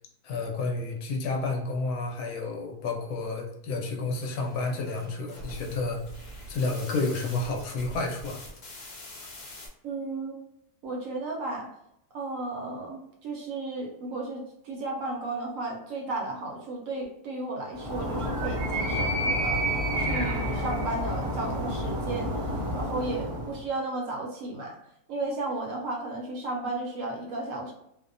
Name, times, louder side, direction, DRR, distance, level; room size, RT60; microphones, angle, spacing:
voice 1, 0.2-6.0 6.5-8.4, left 3 dB, 75° left, 1 dB, 1.0 m, -30 dB
sound 1, 4.1-9.7, left 1 dB, 55° left, 0.8 m, -44 dB
voice 2, 9.8-10.4 10.8-11.7 12.1-19.6 20.0-22.3 22.7-24.7 25.1-27.7, right 2 dB, 70° right, -1 dB, 0.9 m, -34 dB
Animal, 17.7-23.6, equal, 45° right, 0.4 m, -29 dB
2.6 x 2.1 x 2.5 m, 0.80 s
omnidirectional pair, 1.6 m